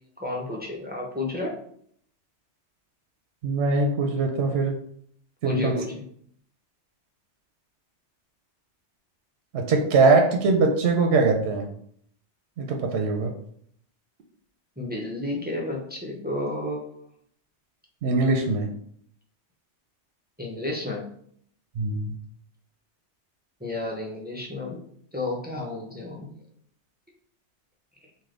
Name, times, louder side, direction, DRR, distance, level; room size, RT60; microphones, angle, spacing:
voice 1, 0.0-1.5 5.4-6.0 14.8-16.9 20.4-21.0 23.6-24.8 25.1-26.3, left 2 dB, 15° right, -1 dB, 0.3 m, -32 dB
voice 2, 3.4-4.8 5.4-5.8 9.5-11.7 12.6-13.3 18.0-18.7 21.8-22.1, right 3 dB, 70° right, 3 dB, 0.8 m, -22 dB
3.3 x 2.6 x 3.7 m, 0.64 s
omnidirectional pair, 1.2 m